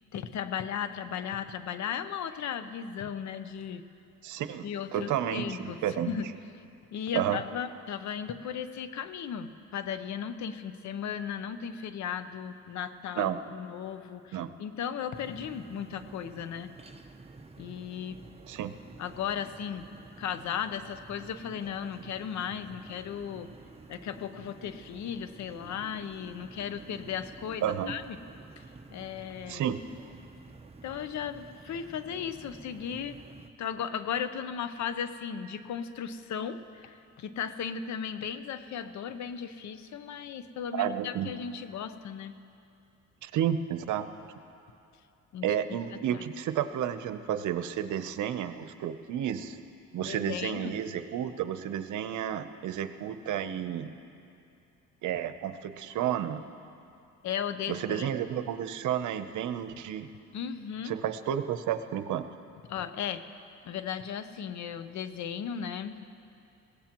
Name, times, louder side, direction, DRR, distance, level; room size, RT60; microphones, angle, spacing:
voice 1, 0.1-3.8 4.6-5.8 6.1-6.3 6.9-16.7 17.6-18.2 19.0-19.9 20.2-23.5 23.9-28.2 28.9-29.7 30.8-33.2 33.6-42.4 45.3-45.8 46.1-46.3 50.0-50.8 57.2-58.2 60.3-60.9 62.7-63.2 63.6-66.1, left 8 dB, 70° left, 11 dB, 0.8 m, -36 dB
voice 2, 4.2-6.1 7.1-7.4 13.2-13.4 14.3-14.5 18.5-18.7 27.6-27.9 29.5-29.8 40.7-41.3 43.2-44.3 45.4-49.6 49.9-53.9 55.0-56.4 57.7-60.1 60.8-62.2, right 10 dB, 75° right, 10 dB, 0.8 m, -31 dB
sound 1, 15.1-33.5, right 3 dB, 20° right, 0.8 m, -51 dB
21.5 x 17.0 x 3.0 m, 2.6 s
cardioid pair, 90°, 30 cm